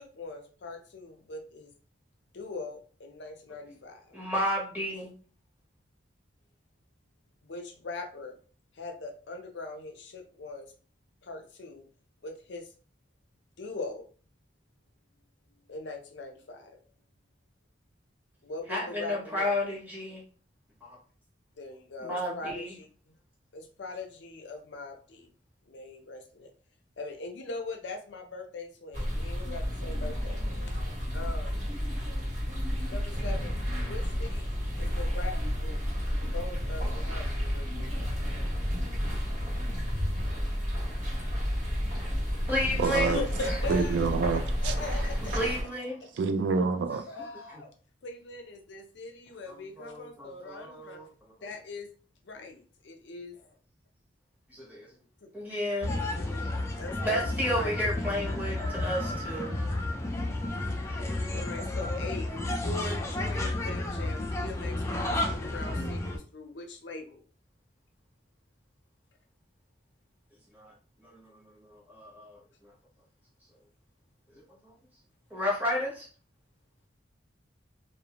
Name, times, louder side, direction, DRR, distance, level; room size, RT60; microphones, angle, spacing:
voice 1, 0.0-1.7 2.3-4.2 7.4-8.4 8.7-10.7 11.2-11.9 12.2-12.7 13.6-14.0 15.7-16.8 18.4-19.7 21.6-22.6 23.5-25.3 25.7-26.5 27.0-30.4 31.1-31.6 32.8-35.8 36.3-38.1 42.8-44.0 44.6-45.3 47.1-47.7 48.0-51.0 51.4-51.9 52.2-53.3 55.2-55.5 56.1-57.7 61.3-67.2, left 3 dB, 75° left, 0.5 m, -41 dB
voice 2, 4.1-5.1 18.7-20.2 20.8-21.0 22.0-22.7 42.5-43.2 43.5-43.6 45.3-46.0 47.5-47.6 49.5-51.1 54.5-54.8 55.3-55.9 56.4-56.5 57.0-59.6 60.8-61.0 70.5-70.7 71.0-72.4 75.3-76.1, left 1 dB, 10° right, 0.9 m, -32 dB
sound 1, 28.9-45.6, equal, 40° right, 1.0 m, -31 dB
voice 3, 42.8-43.2 43.7-44.7 46.2-47.0, right 4 dB, 75° right, 0.3 m, -27 dB
sound 2, 55.8-66.2, left 1 dB, 15° left, 0.3 m, -32 dB
2.5 x 2.0 x 2.9 m
head